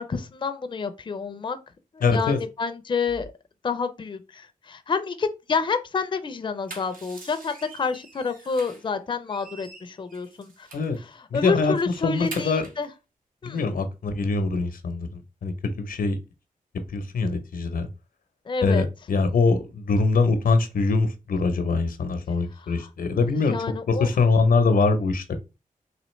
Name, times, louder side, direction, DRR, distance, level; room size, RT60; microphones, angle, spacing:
voice 1, 0.0-1.6 1.9-3.3 3.6-10.7 11.0-12.9 13.4-13.7 18.5-18.9 22.6-22.9 23.4-24.1, left 5 dB, 35° left, 0.4 m, -29 dB
voice 2, 2.0-2.4 10.7-11.0 11.3-11.7 12.0-12.7 13.4-16.2 16.9-17.9 18.6-23.6 23.9-25.3, left 4 dB, 85° left, 0.7 m, -23 dB
sound 1, 6.4-8.9 9.3-11.0 11.4-11.5 11.8-12.9, right 2 dB, 75° right, 1.1 m, -44 dB
4.0 x 2.9 x 3.1 m
wide cardioid pair, 115°, 14 cm